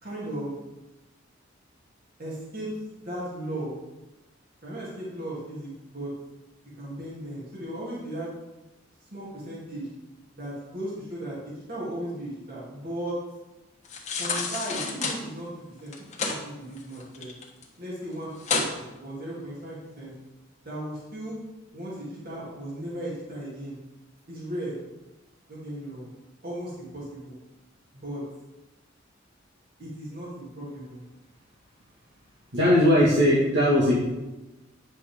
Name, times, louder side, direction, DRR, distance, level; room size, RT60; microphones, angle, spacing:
voice 1, 0.0-0.5 2.2-3.7 4.6-6.1 6.8-8.3 9.1-9.9 10.3-13.2 14.2-15.5 15.8-15.9 16.2-17.3 17.8-20.1 20.6-21.4 21.7-23.8 24.3-24.8 25.5-26.1 26.4-27.4 28.0-28.2 29.8-31.0, right 1 dB, 50° right, -7 dB, 2.8 m, -36 dB
sound 1, 13.8-15.2 15.9-16.4 16.8-17.6 18.0-18.1 18.4-18.7 19.2-19.3, left 4 dB, 35° left, 1.3 m, -29 dB
voice 2, 32.5-34.0, left 1 dB, 70° right, -7 dB, 2.0 m, -19 dB
9.5 x 6.3 x 3.6 m, 1.0 s
head